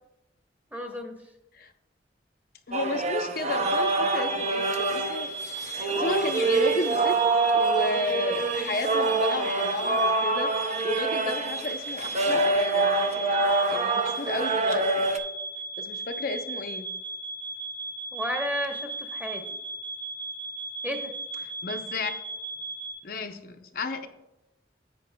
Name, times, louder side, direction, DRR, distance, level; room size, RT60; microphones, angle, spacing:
voice 1, 0.7-1.1 18.1-19.4 20.8-21.1, equal, 10° right, 3 dB, 1.0 m, -32 dB
voice 2, 2.7-5.3 5.7-7.2 7.5-15.1 15.8-16.9 21.4-22.1 23.0-24.1, left 2 dB, 55° left, 5 dB, 0.6 m, -33 dB
sound 1, 2.7-15.2, right 3 dB, 40° right, 0.6 m, -26 dB
sound 2, 3.6-22.9, right 3 dB, 80° right, 3.1 m, -36 dB
10.5 x 8.3 x 2.2 m, 0.93 s
head